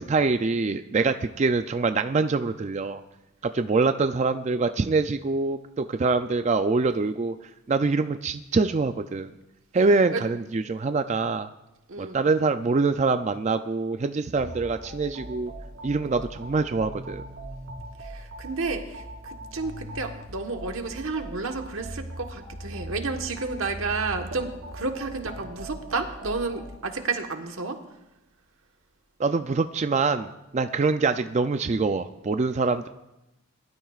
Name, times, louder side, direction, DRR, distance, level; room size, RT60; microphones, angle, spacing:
voice 1, 0.0-3.0 3.5-7.3 7.7-9.3 9.7-11.5 12.0-15.5 15.8-17.2 29.2-32.9, right 4 dB, 30° right, 9 dB, 0.3 m, -24 dB
sound 1, 14.3-26.7, right 1 dB, 85° right, 3.7 m, -40 dB
voice 2, 18.0-27.8, right 3 dB, 70° right, 4 dB, 1.3 m, -31 dB
21.5 x 12.0 x 2.4 m, 0.92 s
head